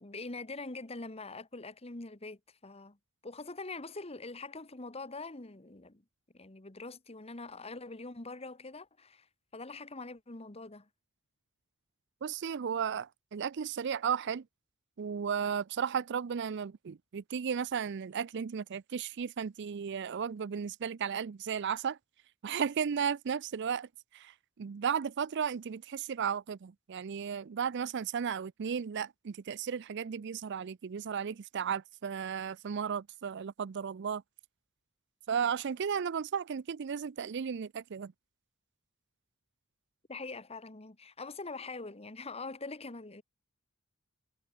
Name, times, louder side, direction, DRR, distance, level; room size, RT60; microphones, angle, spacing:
voice 1, 0.0-3.0 3.2-6.0 6.3-9.3 9.5-10.9 40.1-43.2, left 3 dB, 30° left, 1.4 m, -43 dB
voice 2, 12.2-14.5 15.0-22.0 22.4-34.2 35.3-38.1, right 7 dB, 55° right, 0.4 m, -34 dB
head